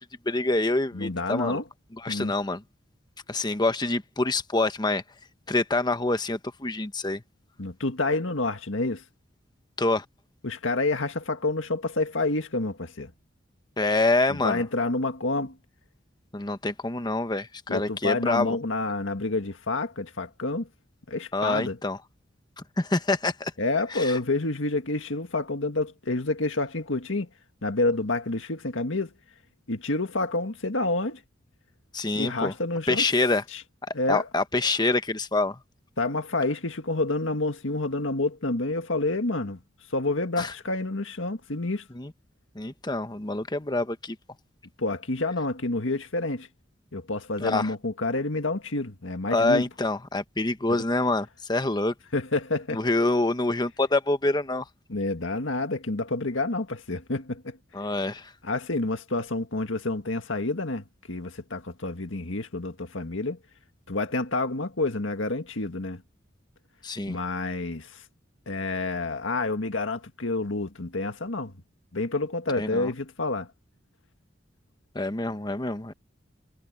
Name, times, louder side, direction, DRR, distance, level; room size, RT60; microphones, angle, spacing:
voice 1, 0.2-1.6 2.0-2.6 3.3-5.0 5.5-7.2 9.8-10.0 13.8-14.6 16.3-18.6 21.3-22.0 22.8-23.5 23.9-24.2 31.9-32.5 32.9-33.4 34.1-35.6 40.4-40.5 41.9-42.1 42.5-44.2 47.4-47.7 49.3-51.9 52.7-54.6 57.7-58.3 66.8-67.2 72.6-72.9 74.9-75.9, left 2 dB, 20° left, 1.1 m, -26 dB
voice 2, 0.9-1.6 2.1-2.3 7.6-9.0 10.4-13.1 14.3-15.6 17.7-20.7 21.1-21.8 23.6-27.3 27.6-29.1 29.7-31.2 32.2-33.1 33.5-33.6 33.9-34.3 36.0-39.6 39.9-41.9 44.8-46.5 46.9-49.7 50.7-50.8 52.1-52.9 54.9-57.6 58.4-63.4 63.9-66.0 67.1-68.0 68.5-71.5 71.9-73.5, left 2 dB, 90° left, 1.8 m, -28 dB
head